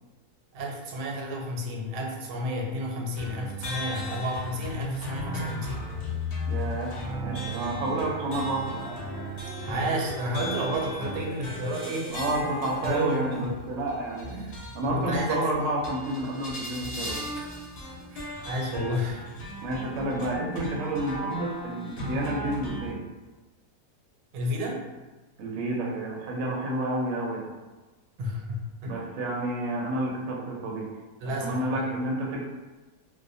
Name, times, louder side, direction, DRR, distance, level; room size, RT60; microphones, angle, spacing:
voice 1, 0.5-5.8 9.7-12.1 12.8-13.5 14.3-15.5 18.1-19.2 24.3-24.8 28.2-29.0 31.2-32.0, equal, 90° right, 0 dB, 1.2 m, -31 dB
sound 1, 3.2-22.9, equal, 85° left, 0.5 m, -36 dB
voice 2, 6.5-6.9 7.2-8.9 12.1-14.3 14.7-17.2 19.6-23.0 25.4-27.5 28.9-30.9 31.2-32.5, right 1 dB, 70° right, -2 dB, 0.8 m, -30 dB
sound 2, 7.0-13.1, right 1 dB, 30° right, 0.5 m, -44 dB
2.7 x 2.1 x 2.6 m, 1.2 s
omnidirectional pair, 1.8 m